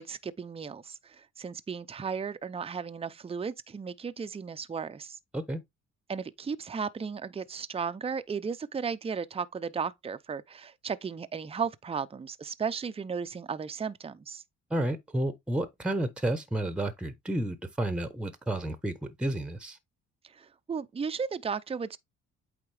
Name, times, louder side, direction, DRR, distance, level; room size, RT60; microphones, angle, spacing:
voice 1, 0.0-5.2 6.1-14.4 20.3-22.0, right 6 dB, 20° right, 0.5 m, -35 dB
voice 2, 14.7-19.8, right 1 dB, 5° right, 0.9 m, -31 dB
8.6 x 3.6 x 3.3 m
cardioid pair, 90°, 30 cm